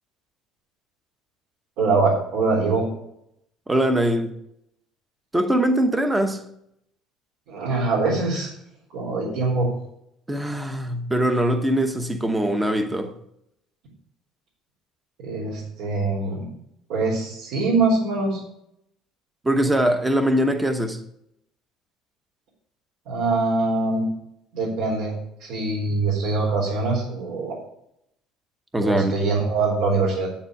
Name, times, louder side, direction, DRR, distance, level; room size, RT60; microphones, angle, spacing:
voice 1, 1.8-2.9 7.5-8.5 8.9-9.7 15.2-16.5 16.9-18.4 23.1-24.1 24.5-25.1 25.4-27.6 28.8-30.3, right 3 dB, 70° right, 4.2 m, -23 dB
voice 2, 3.7-4.3 5.3-6.4 10.3-13.1 19.4-21.0 28.7-29.2, right 1 dB, 10° right, 0.9 m, -22 dB
8.9 x 7.4 x 7.0 m
cardioid pair, 170°, 0 cm